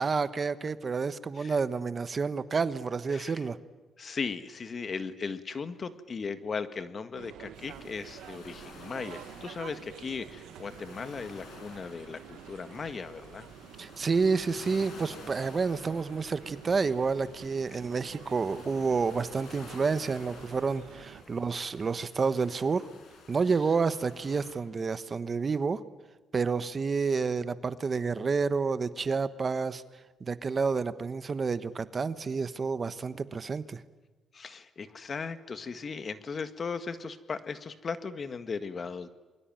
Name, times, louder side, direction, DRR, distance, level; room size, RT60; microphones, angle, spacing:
voice 1, 0.0-3.6 13.8-22.8 23.3-25.8 26.3-29.8 30.2-33.8, right 4 dB, 35° right, 13 dB, 1.1 m, -29 dB
voice 2, 4.0-13.5 17.7-17.8 34.3-39.1, left 5 dB, 40° left, 11 dB, 1.8 m, -37 dB
sound 1, 7.1-21.2, right 11 dB, 85° right, 1.1 m, -49 dB
sound 2, 7.5-24.5, left 4 dB, 70° left, 6.1 m, -52 dB
28.0 x 22.0 x 9.1 m, 1.2 s
cardioid pair, 90°, 0 cm